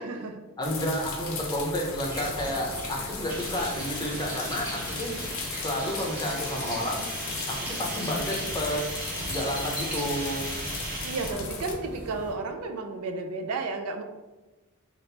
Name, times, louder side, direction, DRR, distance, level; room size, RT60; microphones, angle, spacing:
voice 1, 0.0-0.4 11.0-14.0, right 3 dB, 75° right, 5 dB, 0.4 m, -32 dB
sound 1, 0.6-11.7, left 5 dB, 65° left, 0.5 m, -38 dB
voice 2, 0.6-5.1 5.6-7.0 7.5-8.8 9.3-10.4, equal, 20° left, -1 dB, 0.5 m, -31 dB
sound 2, 2.0-12.3, equal, 5° right, 1.0 m, -39 dB
sound 3, 3.3-11.3, right 1 dB, 45° right, 0.8 m, -38 dB
2.9 x 2.5 x 3.2 m, 1.1 s
head